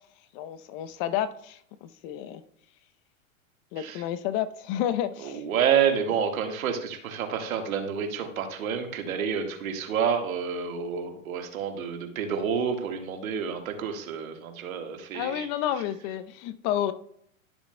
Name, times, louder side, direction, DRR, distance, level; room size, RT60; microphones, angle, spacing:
voice 1, 0.3-2.4 3.7-5.4 15.1-16.9, left 11 dB, 40° left, 13 dB, 0.7 m, -30 dB
voice 2, 5.2-15.5, right 7 dB, 80° right, 4 dB, 1.7 m, -29 dB
12.0 x 7.0 x 2.2 m, 0.67 s
hypercardioid pair, 115°, 41 cm